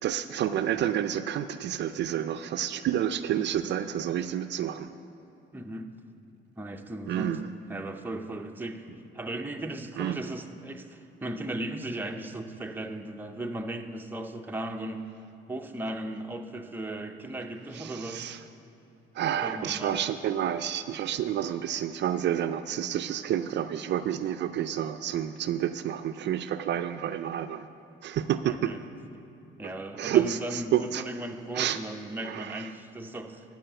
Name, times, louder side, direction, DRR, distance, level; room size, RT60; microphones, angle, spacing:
voice 1, 0.0-4.9 7.1-7.4 10.0-10.2 17.7-18.4 19.1-27.7 28.0-28.7 30.0-31.0 31.5-31.8 32.2-32.7, right 10 dB, 60° right, 10 dB, 0.4 m, -29 dB
voice 2, 5.5-5.9 6.6-7.4 7.7-15.0 15.5-18.3 19.4-20.0 28.4-28.8 29.1-29.2 29.6-33.4, right 1 dB, 10° right, 4 dB, 0.6 m, -37 dB
11.5 x 4.9 x 8.0 m, 2.9 s
cardioid pair, 90°, 20 cm